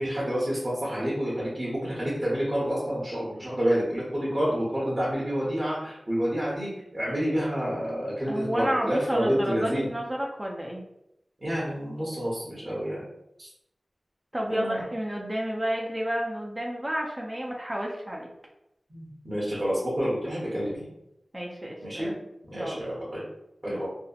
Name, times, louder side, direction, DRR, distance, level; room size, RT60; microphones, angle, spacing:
voice 1, 0.0-9.9 11.4-13.0 13.4-13.5 14.5-14.8 18.9-20.9 21.8-22.1 22.4-23.2 23.6-23.9, equal, 40° right, -7 dB, 0.9 m, -28 dB
voice 2, 8.3-10.8 14.3-18.3 21.3-22.1 22.5-22.8 23.7-23.9, equal, 25° right, -1 dB, 0.5 m, -31 dB
2.7 x 2.1 x 2.4 m, 0.83 s
cardioid pair, 45°, 0 cm